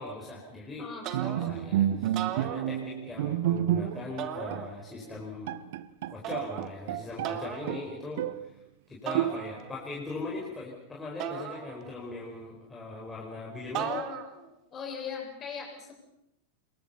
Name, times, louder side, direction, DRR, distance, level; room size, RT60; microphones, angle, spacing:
voice 1, 0.0-0.9 1.2-5.5 6.1-8.6 8.9-13.9, left 3 dB, 10° left, -4 dB, 4.9 m, -40 dB
sound 1, 1.0-1.7 2.0-3.2 4.2-5.1 6.2-6.8 7.2-7.8 9.1-9.9 11.2-12.2 13.7-14.5, right 9 dB, 35° right, 2.0 m, -37 dB
Bowed string instrument, 1.1-4.2 4.5-4.7 5.2-5.3 5.5-7.4 7.7-8.5 9.1-9.7, right 11 dB, 55° right, 0.9 m, -30 dB
voice 2, 13.7-14.2 14.7-15.9, left 6 dB, 25° left, 1 dB, 7.3 m, -38 dB
28.0 x 22.0 x 5.7 m, 0.82 s
figure-of-eight pair, 90°, 0 cm